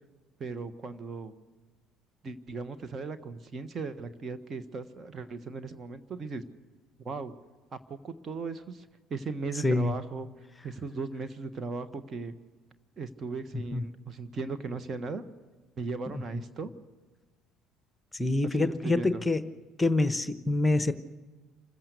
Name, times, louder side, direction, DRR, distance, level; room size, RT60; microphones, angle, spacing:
voice 1, 0.4-1.3 2.2-6.4 7.0-7.3 7.7-10.3 10.6-12.3 13.0-15.2 15.8-16.7 18.4-19.2, right 4 dB, 35° right, 11 dB, 1.5 m, -37 dB
voice 2, 18.2-19.4 19.8-20.9, left 2 dB, 15° left, 12 dB, 1.0 m, -25 dB
26.5 x 15.0 x 6.7 m, 1.4 s
figure-of-eight pair, 55°, 0 cm